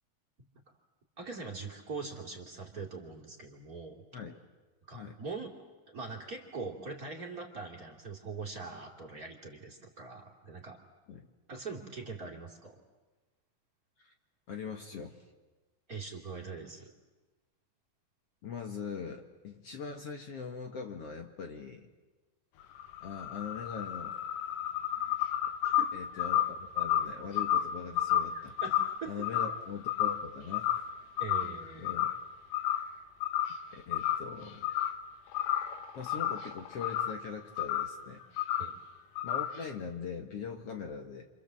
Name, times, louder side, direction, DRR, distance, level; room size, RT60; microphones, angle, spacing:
voice 1, 1.2-4.0 4.9-5.5 5.9-10.8 11.5-12.8 15.9-16.9 25.7-25.9 28.6-29.4 31.2-31.9 38.6-38.7, right 4 dB, 30° right, 0 dB, 3.0 m, -42 dB
voice 2, 4.9-5.2 11.1-11.3 14.0-14.1 14.5-15.2 18.4-21.9 23.0-24.2 25.9-28.6 29.1-30.7 31.8-32.1 33.7-34.7 36.0-38.2 39.2-41.3, left 6 dB, 55° left, 3 dB, 2.3 m, -41 dB
sound 1, 22.6-30.3 30.5-30.9 31.2-32.3 32.5-32.9 33.2-33.6 33.9-35.0 35.3-37.2 37.6-37.9 38.4-38.7 39.2-39.6, left 11 dB, 90° left, 2.9 m, -31 dB
29.0 x 27.0 x 7.6 m, 1.2 s
omnidirectional pair, 3.7 m